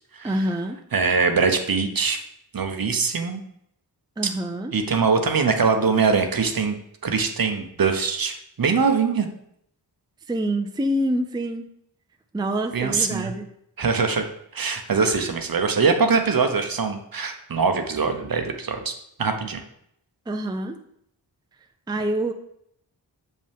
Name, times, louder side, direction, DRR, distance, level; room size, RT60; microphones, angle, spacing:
voice 1, 0.2-0.8 4.2-4.7 10.3-11.7 12.3-13.5 15.0-15.3 20.3-20.8 21.9-22.3, right 1 dB, 10° right, 6 dB, 0.5 m, -26 dB
voice 2, 0.9-2.2 2.5-3.4 4.2-4.3 4.7-6.8 7.0-9.3 12.7-13.3 13.8-14.2 14.5-18.9 19.2-19.6, right 5 dB, 55° right, 6 dB, 0.9 m, -22 dB
6.8 x 5.4 x 3.5 m, 0.73 s
wide cardioid pair, 65°, 42 cm